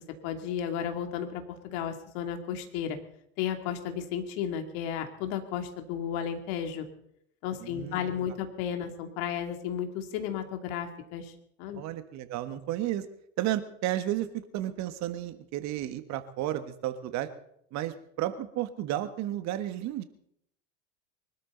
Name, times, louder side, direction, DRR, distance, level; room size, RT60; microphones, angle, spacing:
voice 1, 0.2-3.0 3.4-6.9 7.4-11.3 11.6-11.8, left 8 dB, 60° left, 5 dB, 2.8 m, -33 dB
voice 2, 7.6-8.3 11.7-13.0 13.4-17.3 17.7-20.0, right 13 dB, 50° right, 11 dB, 1.5 m, -33 dB
24.0 x 13.0 x 4.0 m, 0.73 s
hypercardioid pair, 80°, 36 cm